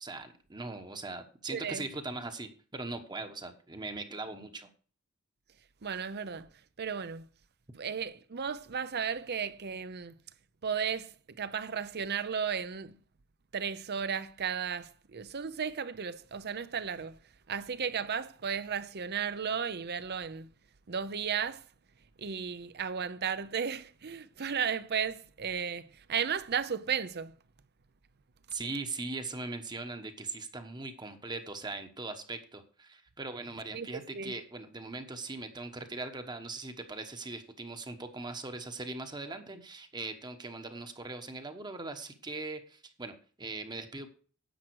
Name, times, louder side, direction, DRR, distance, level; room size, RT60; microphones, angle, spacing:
voice 1, 0.0-4.7 28.5-44.1, right 3 dB, 20° right, 1.1 m, -40 dB
voice 2, 1.5-1.8 5.8-6.5 6.8-7.3 7.7-10.1 10.6-11.1 11.4-12.9 13.5-17.1 17.5-20.5 20.9-21.6 22.2-25.8 26.1-27.3 33.7-34.3, right 7 dB, 50° right, 0.7 m, -34 dB
10.5 x 7.7 x 4.7 m
head